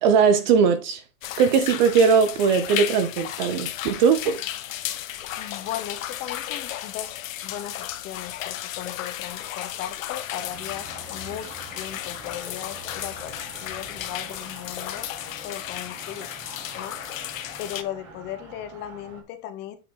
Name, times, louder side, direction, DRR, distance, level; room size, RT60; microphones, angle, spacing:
voice 1, 0.0-1.0 1.4-4.4, right 6 dB, 30° right, 0.6 m, -19 dB
sound 1, 1.2-17.8, left 12 dB, 60° left, 1.3 m, -34 dB
voice 2, 5.4-7.2 7.4-11.5 11.7-16.3 16.7-17.0 17.6-19.8, left 11 dB, 25° left, 0.9 m, -37 dB
sound 2, 10.5-19.2, right 4 dB, 60° right, 3.5 m, -45 dB
8.6 x 4.8 x 4.0 m
supercardioid pair, 165°, 45 cm